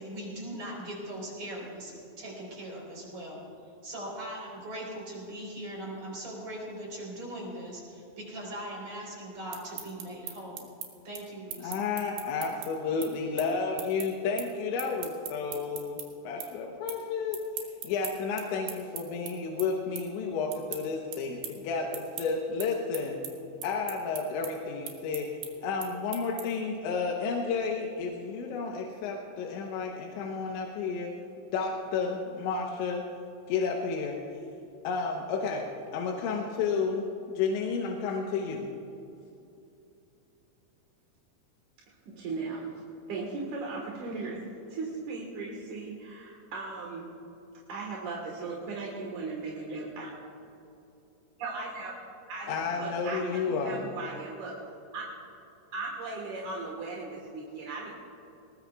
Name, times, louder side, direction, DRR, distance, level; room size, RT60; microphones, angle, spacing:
voice 1, 0.0-3.4 3.8-10.7 11.0-11.8, right 1 dB, 35° right, -2 dB, 4.8 m, -40 dB
sound 1, 9.3-16.1 16.4-17.0 17.3-26.7, right 9 dB, 75° right, 3.4 m, -41 dB
voice 2, 11.6-23.2 23.6-25.3 25.6-31.1 31.5-33.0 33.5-34.2 34.8-37.1 37.4-38.7 52.5-53.8, left 5 dB, 90° left, 0 dB, 3.4 m, -31 dB
voice 3, 42.1-42.7 43.1-44.4 44.7-47.1 47.7-50.1 51.4-52.0 52.3-54.5 54.9-55.0 55.7-57.9, right 3 dB, 60° right, -2 dB, 2.4 m, -37 dB
22.0 x 19.5 x 2.4 m, 2.7 s
omnidirectional pair, 5.1 m